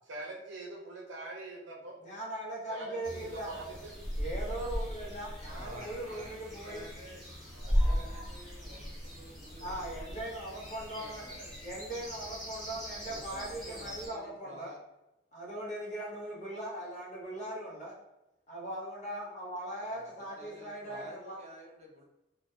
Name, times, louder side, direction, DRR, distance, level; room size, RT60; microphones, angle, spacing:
voice 1, 0.1-2.0 2.7-3.9 5.5-5.6, right 2 dB, 90° right, 0 dB, 0.6 m, -43 dB
voice 2, 2.0-3.5 4.1-6.8 7.6-8.1 9.6-11.2 11.6-14.7 15.3-17.9 18.5-21.4, right 1 dB, 40° left, -4 dB, 0.8 m, -40 dB
sound 1, 3.0-14.1, equal, ahead, 0.8 m, -37 dB
voice 3, 5.6-7.2 7.5-9.8 10.1-10.3 10.8-11.5 13.0-14.8 19.9-22.0, equal, 35° right, -2 dB, 0.5 m, -50 dB
2.4 x 2.1 x 2.7 m, 0.92 s
head